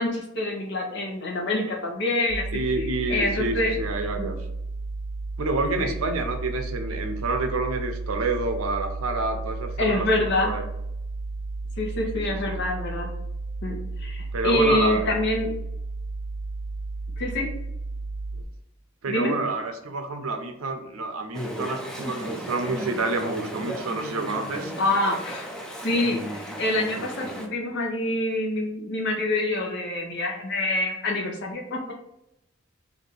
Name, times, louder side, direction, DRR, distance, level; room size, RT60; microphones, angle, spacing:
voice 1, 0.0-2.5 2.7-3.7 4.2-4.3 5.8-5.9 9.8-10.5 11.8-13.1 13.6-15.5 17.2-17.5 19.1-19.4 24.8-25.5 25.8-32.0, left 2 dB, 55° left, 0 dB, 1.0 m, -26 dB
sound 1, 2.3-18.4, right 3 dB, 50° right, 0.5 m, -33 dB
voice 2, 2.5-4.3 5.4-10.6 12.1-12.6 14.3-15.1 19.0-24.7, right 3 dB, 90° right, 6 dB, 0.6 m, -28 dB
Chatter / Stream, 21.3-27.5, right 1 dB, 5° left, 0.5 m, -35 dB
3.3 x 2.7 x 4.0 m, 0.83 s
head